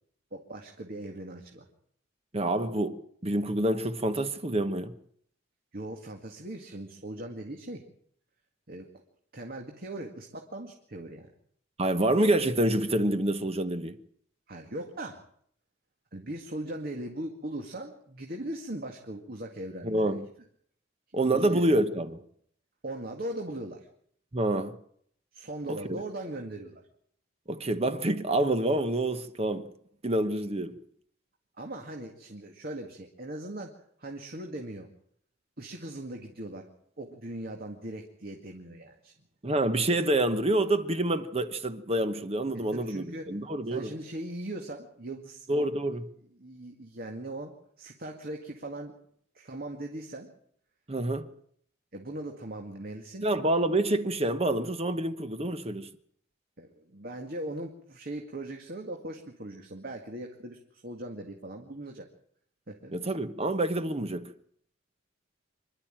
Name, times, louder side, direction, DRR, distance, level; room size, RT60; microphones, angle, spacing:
voice 1, 0.3-1.7 5.7-7.8 8.7-8.9 9.3-11.3 14.5-15.2 16.1-20.1 21.3-21.7 22.8-23.9 25.3-26.8 31.6-34.9 35.6-36.7 37.0-39.1 42.7-43.4 43.7-45.6 46.4-48.9 49.3-50.3 51.9-53.3 56.6-62.1 62.7-62.9, right 1 dB, 50° right, 2.1 m, -39 dB
voice 2, 2.3-3.0 3.2-4.9 11.8-14.0 19.8-20.2 21.1-22.2 24.3-24.7 25.9-26.0 27.5-29.7 30.0-30.7 39.4-43.9 45.5-46.1 50.9-51.3 53.2-55.9 62.9-64.3, right 1 dB, 30° right, 1.1 m, -27 dB
25.5 x 12.0 x 9.1 m
head